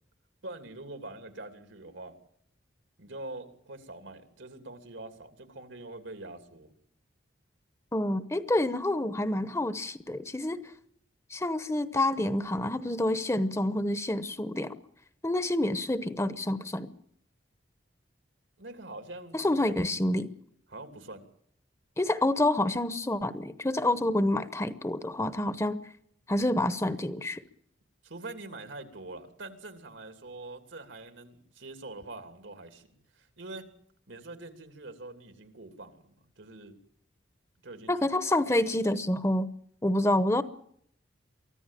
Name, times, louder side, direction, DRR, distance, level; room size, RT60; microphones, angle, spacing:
voice 1, 0.4-2.2 3.0-6.7 18.6-19.4 19.6-19.7 20.7-21.2 28.0-32.9 33.1-33.7 34.1-36.7 37.6-38.1, right 2 dB, 85° right, 7 dB, 2.9 m, -44 dB
voice 2, 7.9-10.6 11.3-14.7 15.2-16.9 19.3-20.3 22.0-25.8 26.3-27.4 37.9-39.5 39.8-40.4, left 1 dB, 15° left, 13 dB, 0.8 m, -28 dB
24.0 x 14.5 x 9.1 m, 0.68 s
head